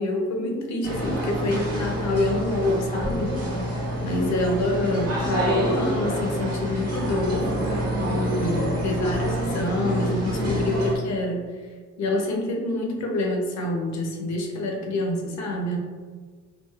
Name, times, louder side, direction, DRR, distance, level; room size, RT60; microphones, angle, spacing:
voice 1, 0.0-3.4 4.0-7.5 8.0-11.5 12.0-15.8, left 2 dB, 65° left, 1 dB, 0.7 m, -26 dB
sound 1, 0.8-10.9, right 1 dB, 55° right, 1.1 m, -27 dB
3.0 x 2.5 x 2.3 m, 1.5 s
cardioid pair, 90°, 30 cm